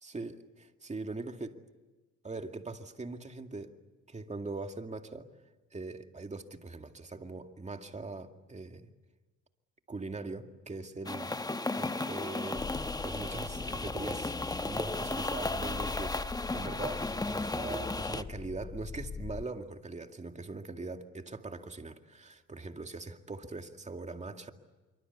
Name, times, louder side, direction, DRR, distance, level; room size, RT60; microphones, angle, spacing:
voice 1, 0.0-1.6 2.2-3.8 4.1-5.3 5.7-8.9 9.9-11.4 11.7-12.7 13.0-14.3 14.6-24.5, right 3 dB, 25° right, 2.2 m, -41 dB
sound 1, 11.1-18.2, left 2 dB, 15° left, 1.0 m, -35 dB
sound 2, 12.6-19.5, left 5 dB, 35° left, 1.0 m, -43 dB
26.5 x 24.0 x 8.3 m
cardioid pair, 90°, 30 cm